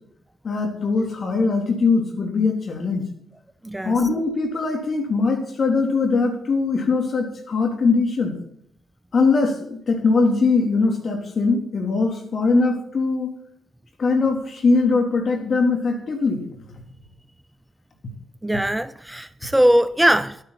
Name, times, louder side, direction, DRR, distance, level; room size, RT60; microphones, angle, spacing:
voice 1, 0.4-3.1 3.8-8.3 9.1-13.3 14.0-16.4, left 4 dB, 55° left, 3.6 m, -21 dB
voice 2, 3.6-4.0 18.4-20.4, equal, 10° right, 0.6 m, -20 dB
12.0 x 11.0 x 4.3 m
supercardioid pair, 55°, 0 cm